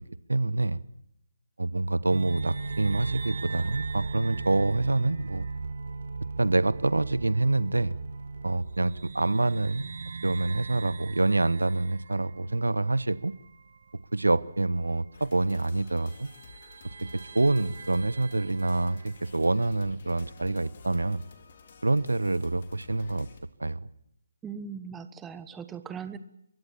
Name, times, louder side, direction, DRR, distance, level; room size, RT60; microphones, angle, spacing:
voice 1, 0.3-0.8 1.6-5.5 6.4-8.0 8.4-9.9 10.2-13.3 14.1-16.3 17.1-21.2 21.8-23.3 23.6-23.9, right 2 dB, 80° right, 18 dB, 1.1 m, -26 dB
sound 1, 2.1-14.0 14.3-14.4 15.4-15.5 16.1-19.1, right 4 dB, 55° right, 1.6 m, -38 dB
sound 2, 15.1-23.4, left 5 dB, 40° left, 4.1 m, -52 dB
voice 2, 24.4-26.2, right 6 dB, 10° right, 12 dB, 1.2 m, -39 dB
25.5 x 23.0 x 7.3 m, 0.79 s
figure-of-eight pair, 150°, 0 cm